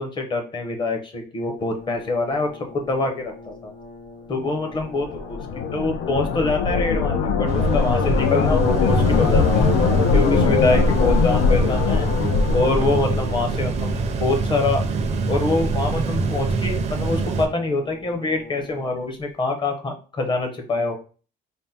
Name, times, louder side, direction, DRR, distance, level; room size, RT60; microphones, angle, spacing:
voice 1, 0.0-3.7 4.3-5.4 5.7-9.7 10.1-12.1 12.5-13.9 14.2-14.8 15.3-21.0, left 3 dB, 25° left, 4 dB, 0.7 m, -25 dB
Brass instrument, 1.6-19.4, left 2 dB, 45° left, 1.4 m, -45 dB
sound 1, 4.8-14.0, left 5 dB, 85° left, 0.6 m, -21 dB
sound 2, 7.5-17.5, right 4 dB, 35° right, 0.5 m, -25 dB
3.5 x 2.1 x 4.2 m, 0.37 s
cardioid pair, 155°, 19 cm